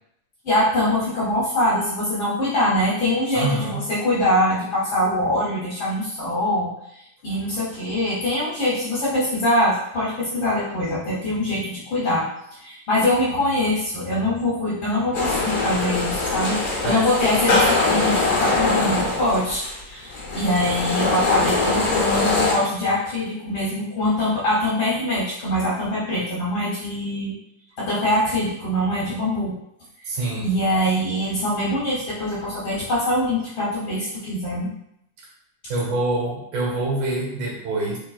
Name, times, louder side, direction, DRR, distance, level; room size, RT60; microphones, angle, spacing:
voice 1, 0.4-6.7 7.2-27.3 27.8-29.5 30.4-34.7, left 1 dB, 70° left, -7 dB, 1.2 m, -23 dB
voice 2, 3.3-3.8 16.8-17.0 30.1-30.5 35.2-35.3 35.7-38.0, right 2 dB, 75° right, -3 dB, 2.5 m, -25 dB
sound 1, 15.1-22.5, left 3 dB, 90° left, 0.8 m, -22 dB
5.2 x 3.2 x 2.4 m, 0.77 s
omnidirectional pair, 3.6 m